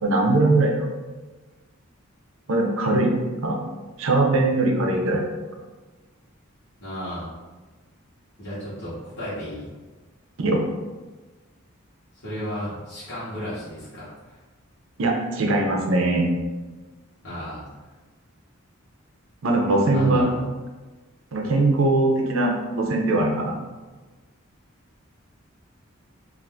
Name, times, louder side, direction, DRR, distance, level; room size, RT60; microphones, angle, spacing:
voice 1, 0.0-0.9 2.5-3.1 3.4-3.6 4.0-5.2 10.4-10.7 15.0-16.3 19.4-20.2 21.3-23.6, right 2 dB, 70° right, 1 dB, 0.5 m, -21 dB
voice 2, 6.8-7.3 8.4-9.7 12.1-14.4 17.2-17.6 19.9-20.5, equal, 50° left, -11 dB, 1.1 m, -33 dB
2.5 x 2.5 x 3.4 m, 1.3 s
head